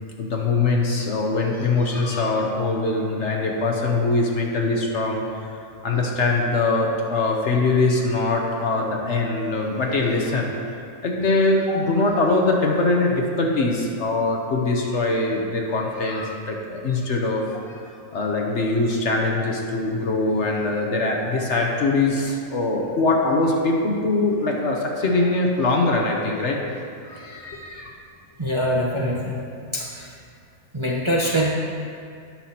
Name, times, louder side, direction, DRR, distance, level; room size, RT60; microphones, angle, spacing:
voice 1, 0.2-5.2 5.8-10.5 11.0-17.4 18.1-26.6 27.0-27.9, left 3 dB, 55° left, 0 dB, 1.1 m, -22 dB
voice 2, 28.4-29.4 29.7-30.1 30.7-31.5, equal, 25° right, -5 dB, 0.8 m, -23 dB
17.0 x 5.8 x 2.9 m, 2.5 s
omnidirectional pair, 1.6 m